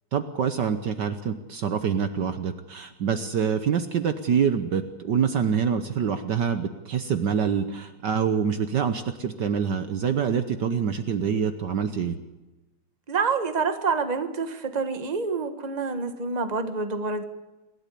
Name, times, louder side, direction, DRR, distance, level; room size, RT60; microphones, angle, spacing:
voice 1, 0.1-12.2, right 7 dB, 60° right, 10 dB, 1.5 m, -26 dB
voice 2, 13.1-17.2, right 4 dB, 20° right, 9 dB, 1.4 m, -27 dB
27.5 x 12.5 x 8.4 m, 1.1 s
omnidirectional pair, 2.3 m